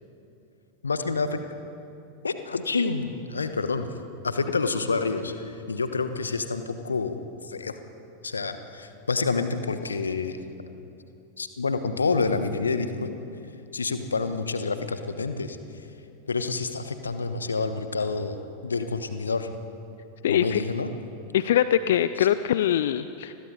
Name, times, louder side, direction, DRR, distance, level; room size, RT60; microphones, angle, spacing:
voice 1, 0.8-1.4 2.2-3.9 4.2-7.8 8.2-10.4 11.4-13.1 13.7-15.6 16.3-19.5 20.3-20.9 22.2-22.3, left 4 dB, 75° left, 9 dB, 1.2 m, -28 dB
voice 2, 20.2-20.6 21.3-23.3, left 11 dB, 60° left, 13 dB, 0.5 m, -23 dB
29.5 x 21.0 x 4.1 m, 2.8 s
figure-of-eight pair, 90°, 0 cm